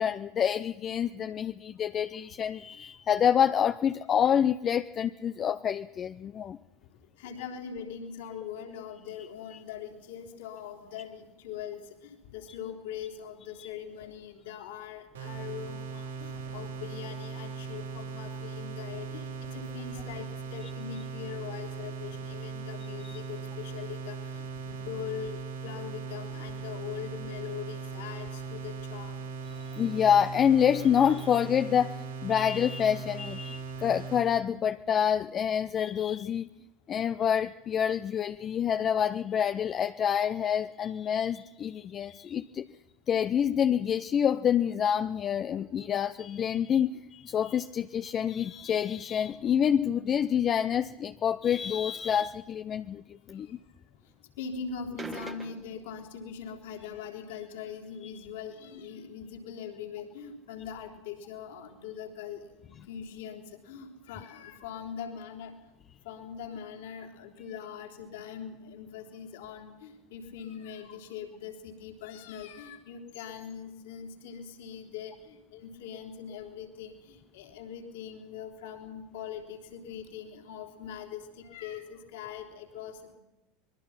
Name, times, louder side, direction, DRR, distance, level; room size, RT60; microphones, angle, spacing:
voice 1, 0.0-6.6 13.6-13.7 23.0-23.1 29.6-31.9 32.2-36.5 36.9-42.7 43.1-53.6, left 8 dB, 35° left, 10 dB, 0.6 m, -27 dB
voice 2, 7.2-29.2 53.3-53.6 54.4-65.5 66.0-83.2, left 7 dB, 65° left, 2 dB, 3.5 m, -42 dB
sound 1, 15.1-34.3, right 5 dB, 80° right, 8.0 m, -39 dB
sound 2, 55.0-56.0, right 3 dB, 20° right, 1.6 m, -42 dB
25.0 x 21.5 x 5.8 m, 1.0 s
figure-of-eight pair, 80°, 0 cm